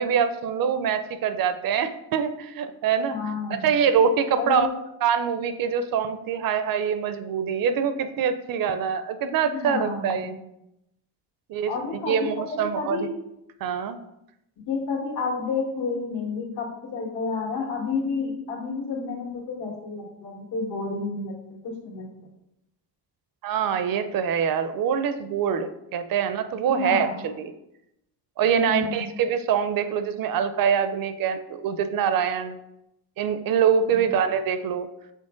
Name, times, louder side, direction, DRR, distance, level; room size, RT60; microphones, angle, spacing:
voice 1, 0.0-3.2 3.5-4.7 5.0-10.3 11.5-13.1 13.6-14.0 23.4-27.5 28.4-32.6 33.2-34.9, right 7 dB, 55° right, 10 dB, 0.5 m, -24 dB
voice 2, 3.1-3.7 4.4-4.7 9.5-10.3 11.7-13.1 14.7-21.3 21.6-22.1 26.7-27.2 28.6-29.1 33.9-34.1, left 4 dB, 70° left, -2 dB, 1.9 m, -30 dB
6.4 x 4.1 x 3.7 m, 0.84 s
cardioid pair, 175°, 41 cm